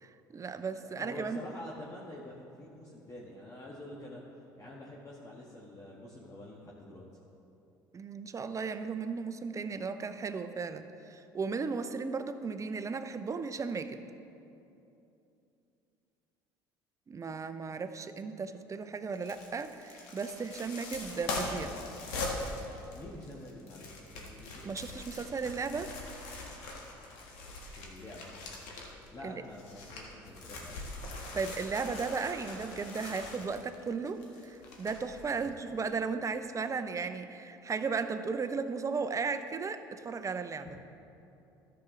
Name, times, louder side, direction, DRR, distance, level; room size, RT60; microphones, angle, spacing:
voice 1, 0.0-1.4 7.9-14.0 17.1-21.7 24.6-25.9 29.2-29.3 31.3-40.7, right 5 dB, 30° right, 10 dB, 0.6 m, -35 dB
voice 2, 0.8-4.2 4.6-7.1 22.9-24.7 27.8-28.4 29.1-30.9 35.3-35.5, left 1 dB, 30° left, -5 dB, 1.4 m, -47 dB
sound 1, 19.1-29.1 29.4-35.5 35.8-35.9, left 2 dB, 70° left, 1.6 m, -42 dB
13.5 x 7.0 x 3.7 m, 2.8 s
hypercardioid pair, 60°, 11 cm